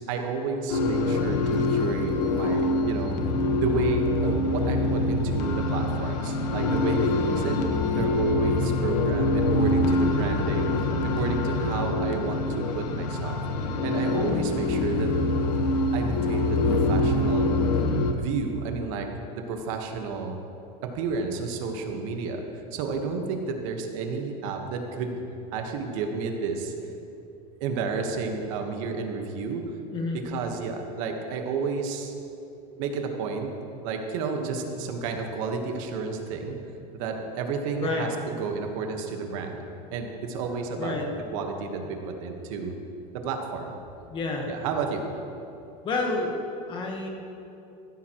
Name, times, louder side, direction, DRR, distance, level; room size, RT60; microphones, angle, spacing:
voice 1, 0.1-3.2 3.6-7.6 8.0-10.7 11.0-13.4 13.8-15.1 15.9-17.5 18.2-19.1 19.3-20.4 20.9-22.4 22.7-25.2 25.5-26.7 27.6-29.6 30.2-32.1 32.8-33.5 33.8-36.6 36.9-39.6 39.9-40.9 41.3-42.7 43.2-43.8 44.5-45.1, right 4 dB, 55° right, 4 dB, 1.3 m, -31 dB
sound 1, 0.7-18.1, left 2 dB, 80° left, 1.2 m, -25 dB
voice 2, 29.9-30.2 37.8-38.1 40.8-41.1 44.1-44.5 45.8-46.3 46.7-47.1, left 3 dB, 25° left, 1 dB, 1.2 m, -29 dB
14.5 x 12.5 x 3.0 m, 2.7 s
supercardioid pair, 160°, 20 cm